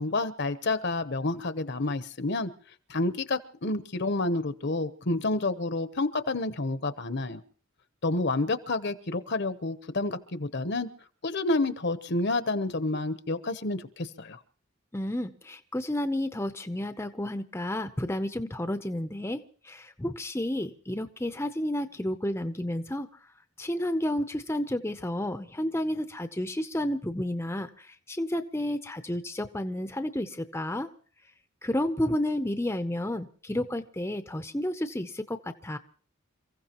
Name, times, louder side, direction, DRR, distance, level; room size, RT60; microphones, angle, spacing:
voice 1, 0.0-2.5 2.9-7.4 8.0-10.9 11.2-14.4, left 2 dB, 55° left, 12 dB, 0.9 m, -29 dB
voice 2, 14.9-23.1 23.6-30.9 31.6-35.8, left 1 dB, 10° left, 9 dB, 0.7 m, -31 dB
28.5 x 15.5 x 3.0 m, 0.42 s
head